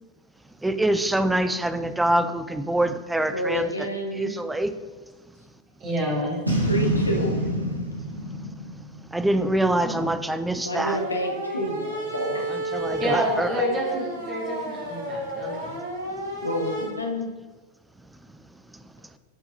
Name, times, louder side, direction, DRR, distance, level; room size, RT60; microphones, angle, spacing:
voice 1, 0.6-3.7 4.1-4.7 9.1-11.0 12.5-13.5, right 1 dB, 5° right, 11 dB, 0.4 m, -25 dB
voice 2, 3.3-4.3 6.6-7.4 10.6-12.5 16.4-17.3, equal, 80° left, 2 dB, 1.0 m, -29 dB
voice 3, 5.8-6.4 9.8-10.1 13.0-15.7, equal, 30° right, -3 dB, 1.7 m, -28 dB
Boom, 6.5-9.8, equal, 85° right, 1.3 m, -27 dB
sound 1, 10.8-16.9, right 1 dB, 70° right, 1.6 m, -32 dB
12.0 x 4.6 x 2.6 m, 1.3 s
figure-of-eight pair, 90°, 0 cm